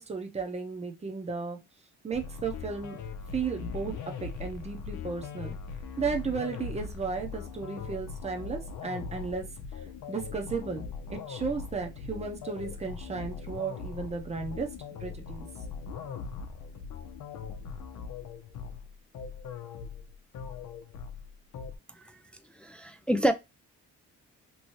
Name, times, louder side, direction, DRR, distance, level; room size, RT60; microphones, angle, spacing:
voice 1, 0.0-1.6 2.0-3.0 3.3-3.9 4.2-5.6 6.0-9.4 10.1-14.7 15.0-15.5, right 5 dB, 20° right, 0.8 m, -34 dB
sound 1, 2.1-21.8, left 5 dB, 75° left, 0.7 m, -40 dB
voice 2, 22.6-23.3, right 1 dB, 5° left, 0.3 m, -26 dB
3.0 x 2.6 x 3.0 m
cardioid pair, 90°, 30 cm